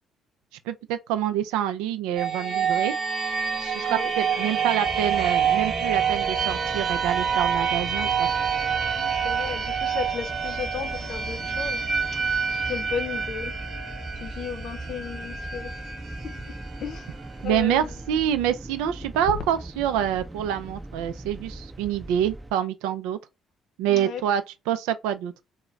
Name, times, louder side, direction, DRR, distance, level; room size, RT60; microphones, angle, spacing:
voice 1, 0.7-2.9 3.6-8.3 17.4-23.2 23.8-25.3, right 10 dB, 80° right, 0.4 m, -26 dB
sound 1, 2.2-17.8, right 6 dB, 45° right, 1.0 m, -27 dB
sound 2, 4.8-22.5, right 1 dB, 10° right, 0.6 m, -40 dB
voice 2, 8.9-12.2 12.5-13.6 14.1-15.7 16.1-17.2 17.4-17.9 19.5-19.6 23.9-24.2, left 7 dB, 65° left, 0.6 m, -35 dB
2.4 x 2.1 x 3.1 m
hypercardioid pair, 55°, 0 cm